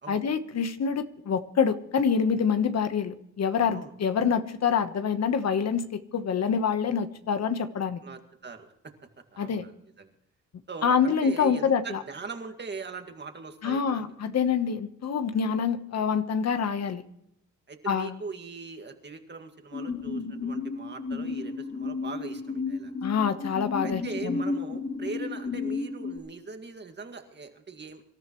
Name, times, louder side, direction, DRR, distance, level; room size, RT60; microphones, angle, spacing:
voice 1, 0.1-8.0 9.4-9.6 10.8-12.0 13.6-17.0 17.9-18.1 23.0-24.0, left 6 dB, 60° left, 10 dB, 1.2 m, -26 dB
voice 2, 8.0-8.7 9.3-10.1 10.7-14.1 17.7-22.9 23.8-28.0, right 4 dB, 35° right, 5 dB, 2.0 m, -41 dB
sound 1, 19.7-26.2, left 4 dB, 45° left, 4.3 m, -33 dB
25.0 x 13.5 x 3.1 m, 0.73 s
cardioid pair, 100°, 29 cm